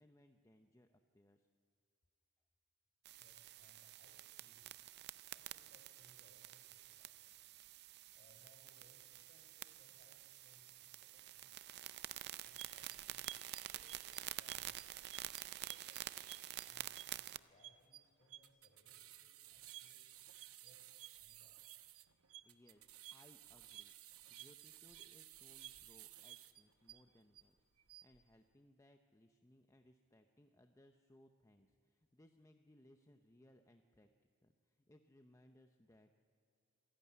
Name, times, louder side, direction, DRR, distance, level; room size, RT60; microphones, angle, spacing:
voice 1, 0.0-1.5 22.4-27.6 27.8-34.1 34.4-36.1, left 1 dB, 15° left, 6 dB, 0.6 m, -67 dB
sound 1, 3.1-17.4, right 13 dB, 50° right, 0.5 m, -49 dB
voice 2, 3.2-4.7 5.3-7.4 8.1-11.5 12.4-13.2 13.7-20.1 20.6-20.9 21.1-21.6, left 1 dB, 35° left, 2 dB, 4.5 m, -71 dB
sound 2, 12.4-27.4 27.8-28.2, right 13 dB, 70° right, 0.9 m, -56 dB
26.5 x 11.5 x 9.5 m, 2.5 s
head